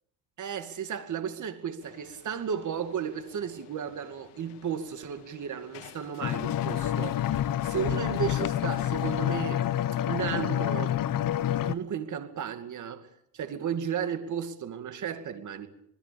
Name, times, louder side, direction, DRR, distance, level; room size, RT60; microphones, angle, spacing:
voice 1, 0.4-9.6 10.1-11.0 11.6-13.1 13.3-15.7, right 8 dB, 45° right, 2.4 m, -34 dB
sound 1, 1.8-9.4, left 12 dB, 80° left, 2.7 m, -52 dB
sound 2, 6.2-11.7, left 11 dB, 50° left, 1.0 m, -28 dB
27.0 x 20.5 x 7.0 m
cardioid pair, 120°, 41 cm